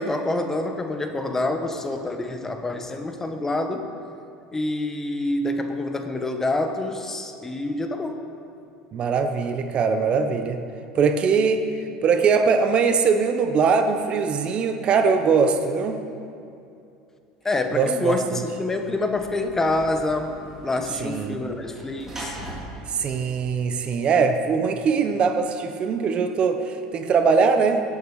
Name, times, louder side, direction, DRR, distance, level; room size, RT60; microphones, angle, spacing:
voice 1, 0.0-3.9 4.5-8.3 17.4-20.3 20.6-22.4, left 2 dB, 15° left, 6 dB, 1.1 m, -27 dB
voice 2, 8.9-10.6 10.9-11.7 12.0-16.0 17.7-18.4 21.0-21.4 22.9-27.8, right 5 dB, 40° right, 8 dB, 0.9 m, -21 dB
Sliding door / Slam, 18.8-24.2, right 1 dB, 15° right, 3.4 m, -41 dB
17.5 x 8.5 x 4.9 m, 2.6 s
supercardioid pair, 100°, 3 cm